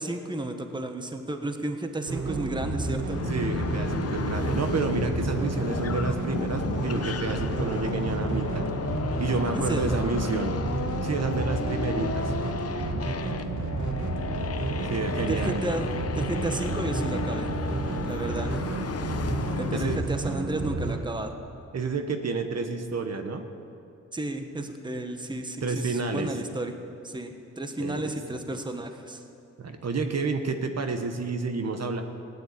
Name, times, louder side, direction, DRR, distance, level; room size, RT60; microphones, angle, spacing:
voice 1, 0.0-3.2 9.5-10.0 15.2-15.9 16.1-17.5 18.0-18.5 19.6-21.3 24.1-26.7 27.0-27.3 27.6-29.2, right 1 dB, 15° right, 6 dB, 1.2 m, -32 dB
sound 1, 2.1-21.0, right 3 dB, 80° right, 1.8 m, -31 dB
sound 2, 3.1-20.0, left 6 dB, 55° left, 0.8 m, -34 dB
voice 2, 3.3-8.7 9.2-10.5 11.0-12.3 14.9-15.6 19.7-20.0 21.7-23.5 25.6-26.3 27.8-28.2 29.6-32.0, right 4 dB, 60° right, 6 dB, 1.3 m, -29 dB
17.0 x 10.0 x 8.4 m, 2.6 s
wide cardioid pair, 90°, 30 cm